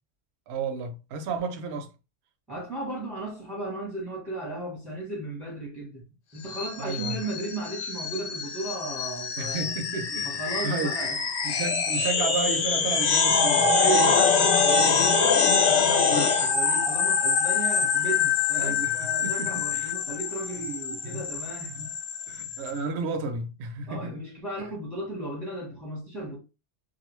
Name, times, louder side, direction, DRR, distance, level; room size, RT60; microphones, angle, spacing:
voice 1, 0.5-1.9 6.8-7.2 9.4-10.3 10.6-11.0 11.4-13.8 15.9-16.3 18.6-19.9 20.6-20.7 21.0-21.2 21.7-21.9 22.3-24.2, right 4 dB, 65° right, 0.8 m, -32 dB
voice 2, 2.5-6.1 6.3-9.7 10.2-11.2 13.7-21.8 23.9-26.4, right 2 dB, ahead, 0.7 m, -35 dB
sound 1, 6.5-22.7, left 5 dB, 75° left, 0.9 m, -25 dB
2.5 x 2.3 x 3.0 m
omnidirectional pair, 1.2 m